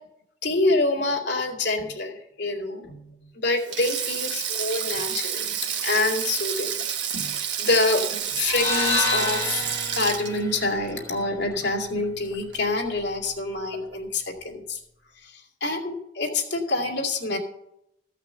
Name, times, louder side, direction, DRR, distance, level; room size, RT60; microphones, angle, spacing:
voice 1, 0.4-5.5 5.8-6.8 7.1-9.7 9.9-14.8 15.2-17.4, left 2 dB, 75° left, 1 dB, 2.3 m, -26 dB
Sink (filling or washing), 3.6-12.0 12.3-12.6 13.7-14.0, right 8 dB, 85° right, 1.2 m, -30 dB
sound 1, 8.4-12.6, left 2 dB, 15° left, 4.4 m, -30 dB
15.0 x 5.8 x 6.7 m, 0.80 s
head